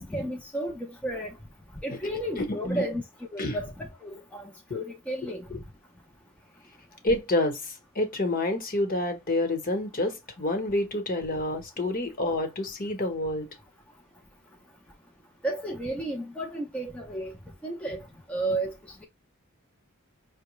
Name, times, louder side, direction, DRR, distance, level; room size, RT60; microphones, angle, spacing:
voice 1, 0.0-1.4 1.8-3.0 3.3-5.5 15.4-17.3 17.6-18.0 18.3-18.7, right 1 dB, 5° left, 0.6 m, -32 dB
voice 2, 7.0-13.5, left 1 dB, 40° left, 1.1 m, -28 dB
5.6 x 2.2 x 3.1 m
head